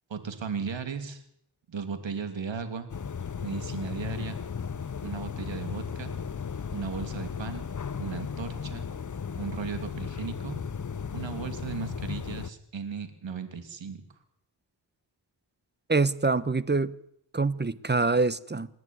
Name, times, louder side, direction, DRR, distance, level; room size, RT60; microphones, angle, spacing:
voice 1, 0.1-1.2 1.7-2.9 3.4-4.4 5.0-6.1 6.7-7.6 8.0-8.9 9.4-10.6 11.1-14.0, right 6 dB, 80° right, 3.0 m, -36 dB
sound 1, 2.9-12.5, left 6 dB, 45° left, 1.0 m, -35 dB
voice 2, 15.9-16.9 17.3-18.7, right 3 dB, 25° right, 1.1 m, -25 dB
27.5 x 11.0 x 9.5 m
cardioid pair, 55°, 44 cm